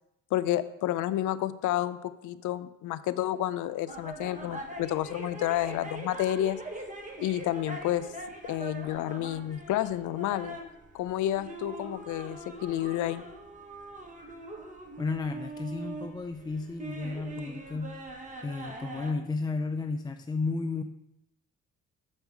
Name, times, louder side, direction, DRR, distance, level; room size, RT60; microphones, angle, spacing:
voice 1, 0.3-6.6 7.2-8.1 8.5-10.6 10.9-13.2, left 13 dB, 80° left, 14 dB, 0.5 m, -30 dB
sound 1, 3.9-19.1, right 2 dB, 25° right, 1.2 m, -42 dB
voice 2, 15.0-18.0 18.4-20.8, left 3 dB, 15° left, 7 dB, 0.3 m, -33 dB
7.2 x 5.4 x 4.6 m, 0.85 s
cardioid pair, 90°, 30 cm